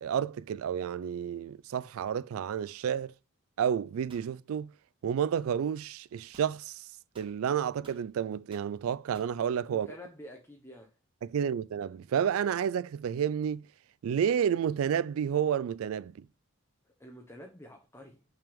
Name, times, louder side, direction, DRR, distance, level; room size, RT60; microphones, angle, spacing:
voice 1, 0.0-3.1 3.6-4.7 5.0-6.9 7.2-9.9 11.2-13.7 14.0-16.3, right 8 dB, 80° right, 0.3 m, -30 dB
sound 1, 4.1-4.3 6.3-6.6 7.1-8.1 8.5-8.7 9.1-9.4, right 2 dB, 25° right, 1.3 m, -57 dB
voice 2, 9.7-10.9 16.9-18.2, left 1 dB, 10° left, 0.8 m, -49 dB
5.7 x 3.6 x 5.1 m
head